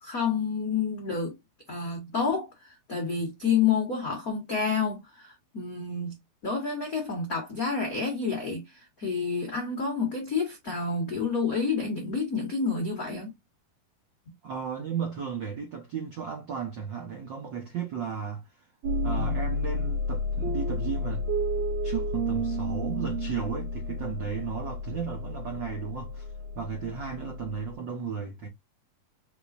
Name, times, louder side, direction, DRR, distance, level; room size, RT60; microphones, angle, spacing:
voice 1, 0.0-1.3 1.7-6.2 6.4-13.3 19.2-19.3, left 5 dB, 80° left, 0.7 m, -29 dB
voice 2, 14.4-18.4 19.0-21.2 21.8-26.3 26.6-28.5, right 7 dB, 80° right, 1.0 m, -35 dB
sound 1, 18.8-27.7, left 1 dB, 60° right, 2.1 m, -31 dB
5.3 x 3.7 x 2.5 m
omnidirectional pair, 4.0 m